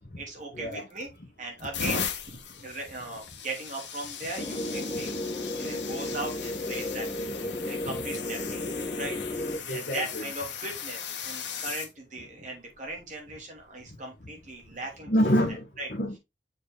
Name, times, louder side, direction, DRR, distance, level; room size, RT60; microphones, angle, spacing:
voice 1, 0.2-1.1 1.4-5.1 5.5-7.1 7.6-8.6 8.9-15.1 15.8-15.9, right 2 dB, 40° right, 2.8 m, -38 dB
sound 1, 0.7-1.1 1.6-11.9 12.8-13.0 14.5-14.7, left 7 dB, 80° left, 1.5 m, -38 dB
sound 2, 4.4-9.6, left 1 dB, 30° left, 1.0 m, -33 dB
voice 2, 9.6-10.2 15.1-16.2, equal, 50° left, 1.2 m, -27 dB
7.0 x 4.7 x 3.8 m
head